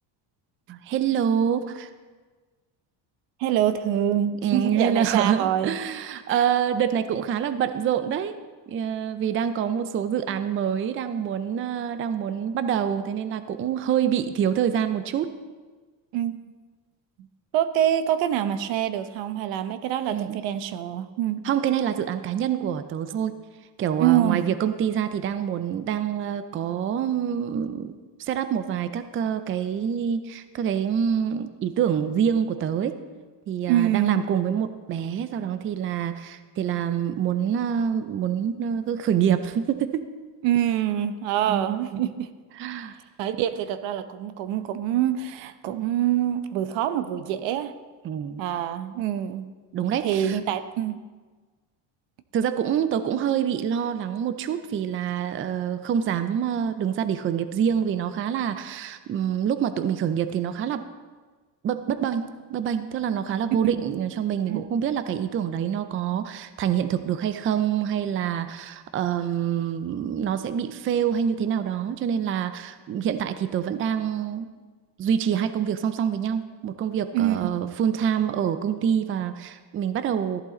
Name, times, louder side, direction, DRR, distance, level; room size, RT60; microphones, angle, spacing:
voice 1, 0.7-1.9 4.4-8.4 8.7-15.4 20.1-20.4 21.4-23.4 23.8-27.9 28.2-33.0 33.5-40.1 41.5-41.8 42.5-42.9 48.0-48.4 49.7-50.4 52.3-60.8 61.6-74.5 75.0-80.4, right 8 dB, 30° right, 11 dB, 0.5 m, -26 dB
voice 2, 3.4-5.7 6.3-6.4 16.1-16.4 17.5-21.4 24.0-24.5 33.7-34.2 40.4-42.3 43.2-47.7 48.4-49.5 50.0-51.0 64.5-64.7 77.1-77.4, right 11 dB, 80° right, 11 dB, 0.9 m, -25 dB
14.0 x 11.5 x 3.8 m, 1.4 s
cardioid pair, 150°, 44 cm